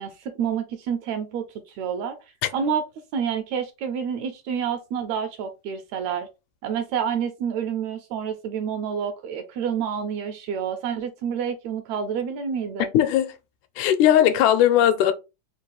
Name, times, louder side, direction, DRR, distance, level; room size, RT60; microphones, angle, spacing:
voice 1, 0.0-2.2 2.5-2.8 3.1-6.3 6.6-12.9, right 7 dB, 75° right, 1.7 m, -28 dB
voice 2, 12.9-13.3 13.8-15.1, left 11 dB, 85° left, 2.0 m, -18 dB
4.8 x 2.3 x 3.8 m
omnidirectional pair, 3.5 m